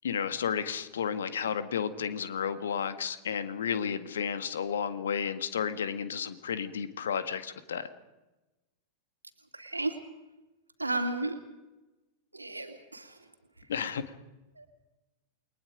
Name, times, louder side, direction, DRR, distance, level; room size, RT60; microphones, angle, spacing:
voice 1, 0.0-7.9 13.7-14.0, left 7 dB, 65° left, 11 dB, 1.7 m, -32 dB
voice 2, 9.5-10.0 10.8-11.4 12.3-13.2 14.6-14.7, right 2 dB, 85° right, 6 dB, 2.6 m, -33 dB
29.0 x 21.5 x 5.1 m, 1.1 s
figure-of-eight pair, 90°, 0 cm